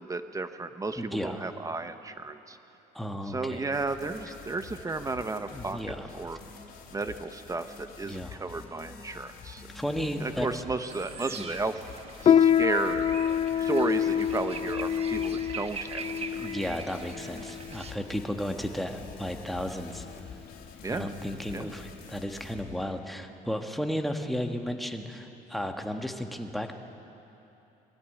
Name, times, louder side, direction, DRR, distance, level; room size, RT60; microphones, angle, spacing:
voice 1, 0.0-2.6 3.2-6.4 6.9-9.7 10.2-16.5 20.8-21.1 21.5-21.7, right 3 dB, 20° right, 9 dB, 0.9 m, -33 dB
voice 2, 1.0-1.4 2.9-3.6 5.5-6.1 8.1-8.4 9.7-10.5 11.4-11.5 16.3-20.0 20.9-26.7, equal, ahead, 4 dB, 1.4 m, -34 dB
sound 1, 3.7-22.8, left 6 dB, 65° left, 2.9 m, -48 dB
sound 2, 10.8-17.9, right 5 dB, 35° right, 1.1 m, -42 dB
Piano, 12.2-22.2, left 9 dB, 35° left, 0.4 m, -27 dB
20.5 x 14.0 x 9.3 m, 2.9 s
cardioid pair, 110°, 17 cm